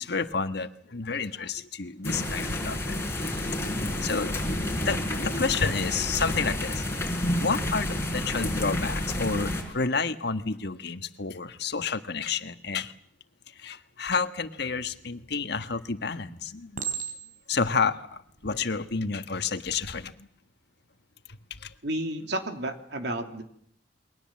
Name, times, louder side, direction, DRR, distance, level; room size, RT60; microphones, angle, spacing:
voice 1, 0.0-4.3 4.8-6.8 7.4-12.9 13.6-16.9 17.5-20.1 21.6-21.7, left 4 dB, 60° left, 9 dB, 1.5 m, -30 dB
sound 1, 2.0-9.6, left 1 dB, 15° left, 5.2 m, -30 dB
Chink clink, 15.3-15.8 16.8-17.6 18.3-18.6, right 7 dB, 45° right, 4.0 m, -35 dB
voice 2, 21.8-23.4, right 1 dB, 60° right, 6 dB, 3.1 m, -31 dB
29.0 x 23.0 x 7.5 m, 0.65 s
head